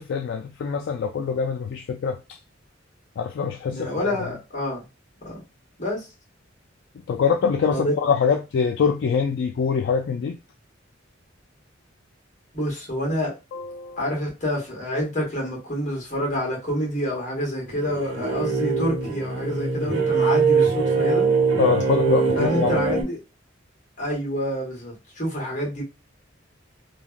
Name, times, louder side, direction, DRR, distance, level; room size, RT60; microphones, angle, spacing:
voice 1, 0.0-2.2 3.2-4.3 7.1-10.4 13.5-14.0 21.6-22.8, left 6 dB, 65° left, 0.3 m, -24 dB
voice 2, 3.6-4.8 5.2-5.4 5.8-6.1 7.7-7.9 12.5-13.3 14.0-21.3 22.3-23.2 24.0-25.8, equal, 40° left, 1.4 m, -27 dB
sound 1, 17.7-23.0, right 5 dB, 85° right, 1.0 m, -22 dB
3.2 x 2.3 x 2.4 m
head